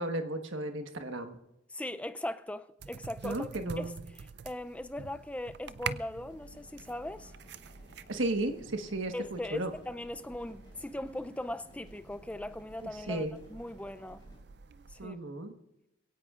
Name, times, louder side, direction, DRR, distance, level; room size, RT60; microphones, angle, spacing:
voice 1, 0.0-1.4 3.2-4.0 8.1-9.7 12.8-13.3 15.0-15.5, right 2 dB, 75° right, 1.3 m, -34 dB
voice 2, 1.7-3.5 3.8-7.3 9.1-14.2 14.9-15.2, left 1 dB, 5° left, 0.4 m, -39 dB
sound 1, 2.8-15.1, right 6 dB, 55° right, 0.4 m, -47 dB
sound 2, 6.3-14.4, left 1 dB, 20° left, 5.2 m, -58 dB
22.5 x 17.0 x 2.5 m
head